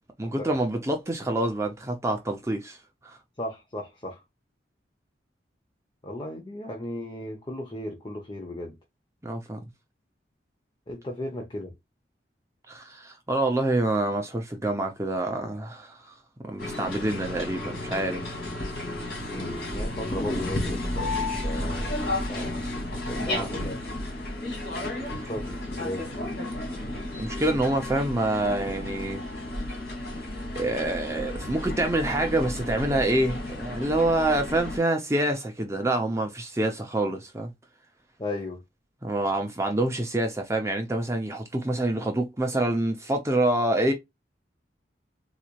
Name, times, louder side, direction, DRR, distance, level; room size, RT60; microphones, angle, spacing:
voice 1, 0.2-2.8 3.0-3.2 9.2-9.6 12.7-16.1 16.4-18.4 23.2-23.5 25.1-25.3 27.2-29.3 30.5-37.5 39.0-43.9, right 1 dB, 15° right, 0.6 m, -27 dB
voice 2, 3.4-4.2 6.0-8.7 10.9-11.7 18.6-18.7 19.3-22.5 23.1-23.9 25.1-26.6 38.2-38.6, left 1 dB, 25° left, 0.8 m, -36 dB
sound 1, 16.6-34.8, left 1 dB, 60° left, 2.2 m, -32 dB
4.1 x 3.0 x 2.4 m
head